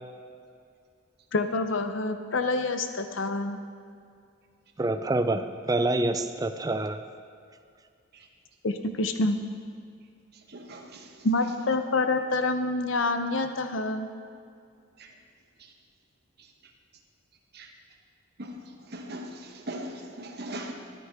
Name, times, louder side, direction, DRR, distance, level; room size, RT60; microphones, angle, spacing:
voice 1, 1.3-3.6 8.6-9.4 11.2-14.1, left 2 dB, 70° left, 8 dB, 0.7 m, -27 dB
voice 2, 4.8-7.0, right 2 dB, 20° right, 9 dB, 0.4 m, -27 dB
voice 3, 10.5-11.3 15.0-15.1 15.6-15.7 17.5-17.7 18.4-20.7, right 1 dB, 55° right, 3 dB, 1.0 m, -40 dB
13.0 x 9.1 x 3.5 m, 2.3 s
head